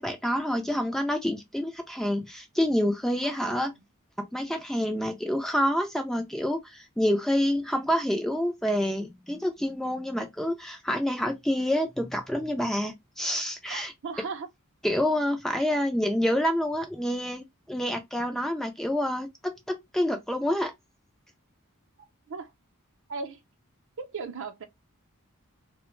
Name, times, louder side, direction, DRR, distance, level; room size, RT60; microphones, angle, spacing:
voice 1, 0.0-3.7 4.2-13.9 14.8-20.7, equal, ahead, 0.3 m, -28 dB
voice 2, 3.2-3.8 13.7-14.5 15.7-15.8 22.3-22.5 23.1-23.4 24.0-24.6, right 4 dB, 60° right, 0.6 m, -37 dB
2.4 x 2.1 x 3.0 m
head